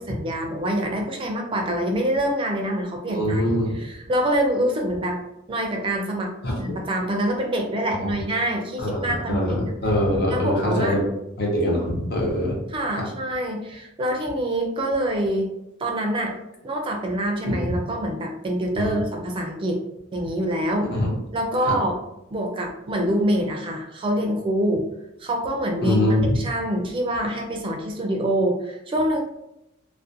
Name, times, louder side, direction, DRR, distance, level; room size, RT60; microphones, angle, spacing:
voice 1, 0.0-3.4 3.7-5.2 5.5-9.7 10.3-11.0 12.7-15.5 15.8-16.3 16.6-19.8 20.1-21.0 21.3-22.0 22.3-24.9 25.2-26.0 26.3-29.2, right 1 dB, 25° right, 1 dB, 0.3 m, -25 dB
voice 2, 3.0-3.8 6.4-6.6 8.0-8.1 8.8-11.1 11.4-12.6 13.0-13.1 17.5-17.6 18.8-19.0 20.8-21.1 21.6-21.8 25.8-26.4, left 1 dB, 55° left, -1 dB, 0.7 m, -23 dB
2.4 x 2.1 x 2.6 m, 0.86 s
head